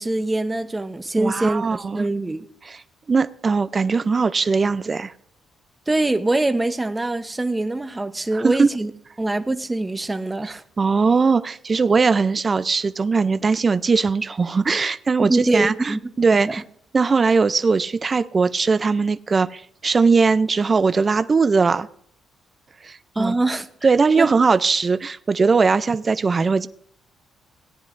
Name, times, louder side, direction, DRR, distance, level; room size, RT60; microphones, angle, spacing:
voice 1, 0.0-2.4 5.9-8.9 9.2-10.6 15.2-16.0 16.4-16.5 23.2-23.7 24.2-24.3, right 2 dB, 15° right, 0.8 m, -23 dB
voice 2, 1.2-2.1 2.7-2.8 3.1-5.1 8.3-8.7 10.8-16.6 16.9-21.9 22.8-23.3 23.8-26.7, right 4 dB, 35° right, 0.4 m, -20 dB
17.5 x 9.8 x 2.5 m
cardioid pair, 90°, 0 cm